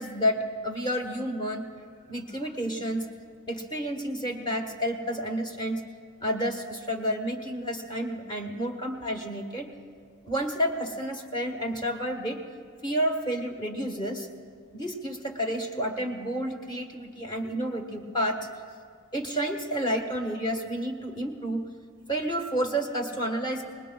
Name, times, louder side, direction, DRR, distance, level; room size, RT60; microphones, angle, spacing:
voice 1, 0.0-1.7 2.1-3.1 3.5-5.8 6.2-9.7 10.2-12.4 12.8-14.3 14.7-18.4 19.1-21.6 22.1-23.6, equal, 20° left, 3 dB, 1.3 m, -30 dB
26.0 x 20.0 x 2.3 m, 2.1 s
head